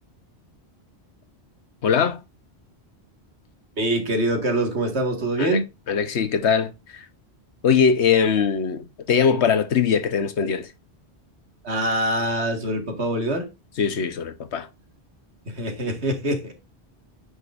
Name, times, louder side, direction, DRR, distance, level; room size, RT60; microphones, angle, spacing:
voice 1, 1.8-2.2 5.4-5.6 5.9-7.1 7.6-10.7 13.8-14.7, left 6 dB, 90° left, 1.2 m, -21 dB
voice 2, 3.8-5.7 11.6-13.5 15.5-16.5, right 1 dB, 80° right, 2.1 m, -24 dB
9.7 x 5.0 x 2.5 m
omnidirectional pair, 1.1 m